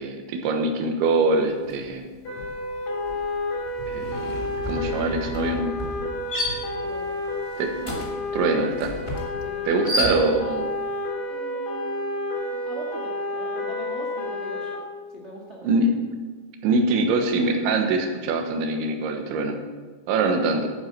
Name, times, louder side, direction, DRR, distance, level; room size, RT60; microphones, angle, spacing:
voice 1, 0.0-2.0 3.9-4.4 4.7-5.7 7.6-7.7 8.3-9.0 9.7-10.6 15.6-15.9 16.6-19.6 20.1-20.7, right 3 dB, 85° right, 4 dB, 3.7 m, -23 dB
sound 1, 1.6-1.9 2.2-10.7, left 1 dB, 20° left, 0.8 m, -33 dB
sound 2, 2.3-14.8, left 2 dB, 50° left, 5.4 m, -30 dB
voice 2, 6.8-7.2 7.8-7.9 9.4-10.0 11.3-14.8 15.1-15.7 20.3-20.4, right 2 dB, 45° right, -1 dB, 0.8 m, -40 dB
11.0 x 9.7 x 7.7 m, 1.4 s
omnidirectional pair, 5.2 m